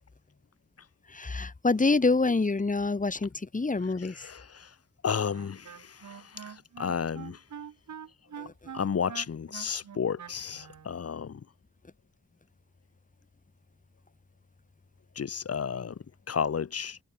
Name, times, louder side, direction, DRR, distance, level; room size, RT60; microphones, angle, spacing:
voice 1, 1.1-4.3 8.4-8.5, left 3 dB, 25° left, 3.5 m, -26 dB
voice 2, 3.9-4.8 5.0-7.4 8.7-11.5 15.2-17.0, left 7 dB, 55° left, 2.0 m, -33 dB
Wind instrument woodwind instrument, 5.3-10.9, right 8 dB, 75° right, 3.8 m, -44 dB
wide cardioid pair, 120°, 29 cm